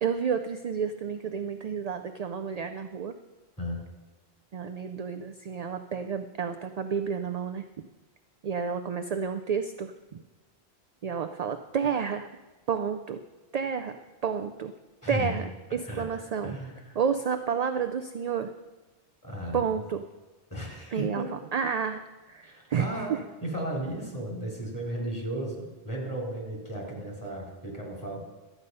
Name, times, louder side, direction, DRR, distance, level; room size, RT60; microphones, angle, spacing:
voice 1, 0.0-3.1 4.5-7.6 8.4-9.9 11.0-12.3 12.7-13.2 13.5-14.7 15.1-15.4 15.7-16.5 17.0-18.5 19.5-20.0 20.9-21.2 21.5-23.1, right 6 dB, 50° right, 8 dB, 0.5 m, -30 dB
voice 2, 15.0-15.4 15.9-16.1 16.4-17.0 19.2-19.6 20.5-21.3 22.4-28.2, right 1 dB, 15° left, -1 dB, 2.9 m, -35 dB
12.5 x 8.2 x 5.3 m, 1.2 s
omnidirectional pair, 1.1 m